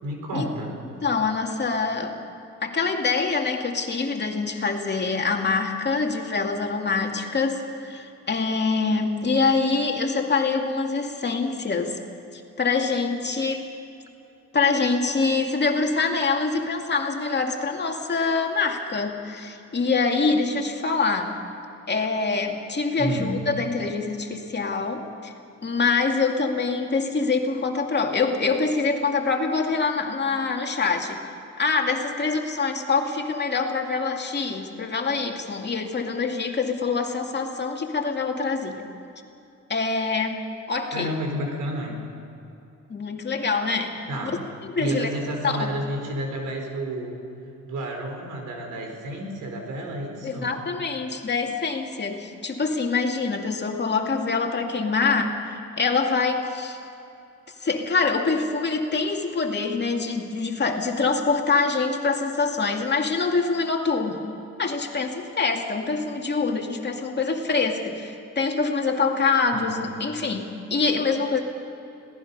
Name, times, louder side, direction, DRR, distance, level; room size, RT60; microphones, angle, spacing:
voice 1, 0.0-0.8 23.0-23.3 40.9-42.0 44.1-44.4 44.7-47.2 47.6-50.6 69.5-69.7, right 1 dB, 80° right, 2 dB, 4.4 m, -30 dB
voice 2, 1.0-2.2 2.6-12.0 12.3-13.7 14.5-21.3 21.9-25.3 25.6-31.2 31.6-38.9 39.7-40.4 40.7-41.1 42.9-44.1 44.8-45.1 45.4-45.7 50.2-56.8 57.6-64.2 64.6-71.4, left 4 dB, 35° left, 2 dB, 2.5 m, -25 dB
26.5 x 18.0 x 5.5 m, 2.8 s
cardioid pair, 90°, 30 cm